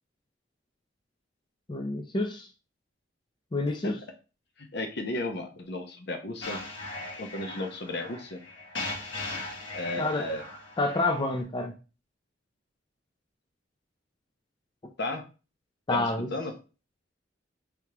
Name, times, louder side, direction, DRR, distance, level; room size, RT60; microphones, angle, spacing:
voice 1, 1.7-2.5 3.5-4.0 10.0-10.3 10.8-11.7 15.9-16.3, left 2 dB, 25° left, 5 dB, 0.4 m, -28 dB
voice 2, 4.6-6.6 7.2-8.4 9.7-10.4 15.0-15.3 15.9-16.5, left 2 dB, 65° left, 4 dB, 0.9 m, -34 dB
sound 1, 6.4-11.4, left 2 dB, 85° left, 1.7 m, -39 dB
3.5 x 2.9 x 4.7 m, 0.33 s
head